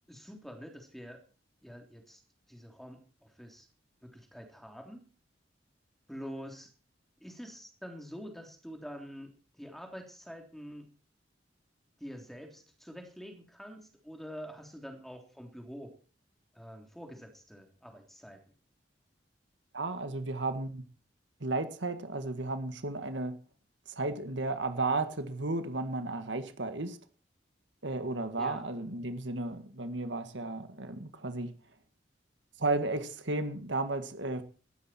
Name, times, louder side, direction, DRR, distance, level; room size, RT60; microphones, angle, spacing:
voice 1, 0.1-1.2 1.6-2.2 2.5-3.7 4.0-5.0 6.1-6.7 7.2-10.9 12.0-15.9 16.5-18.4 28.4-28.6, equal, ahead, 3 dB, 3.3 m, -46 dB
voice 2, 19.7-20.8 21.4-23.4 23.9-27.0 27.8-31.5 32.6-34.4, right 2 dB, 90° right, 9 dB, 1.9 m, -33 dB
18.0 x 13.0 x 4.5 m, 0.38 s
head